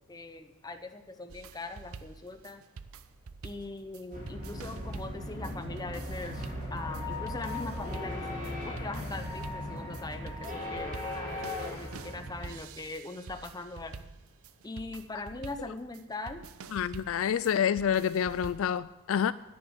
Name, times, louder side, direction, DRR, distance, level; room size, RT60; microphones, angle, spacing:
voice 1, 0.0-2.6 3.4-14.1 14.6-16.4, left 2 dB, 15° left, 8 dB, 0.7 m, -41 dB
sound 1, 1.3-18.8, right 5 dB, 70° right, 0.6 m, -48 dB
sound 2, 4.1-12.6, left 1 dB, 40° right, 4.9 m, -37 dB
voice 2, 16.7-19.3, left 8 dB, 65° left, 16 dB, 0.3 m, -28 dB
10.5 x 9.9 x 8.0 m, 0.99 s
head